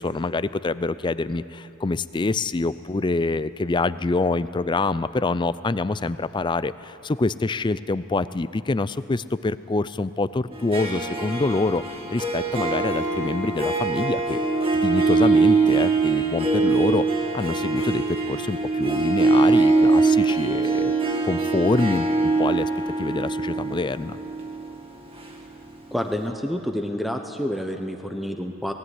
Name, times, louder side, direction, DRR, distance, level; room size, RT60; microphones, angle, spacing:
voice 1, 0.0-14.4 14.7-20.9 21.2-22.7 23.0-24.2, left 3 dB, 20° left, 15 dB, 0.4 m, -26 dB
Harp, 10.5-25.9, right 3 dB, 25° right, 1.9 m, -22 dB
voice 2, 25.9-28.7, equal, ahead, 4 dB, 0.8 m, -28 dB
18.5 x 17.5 x 9.6 m, 3.0 s
head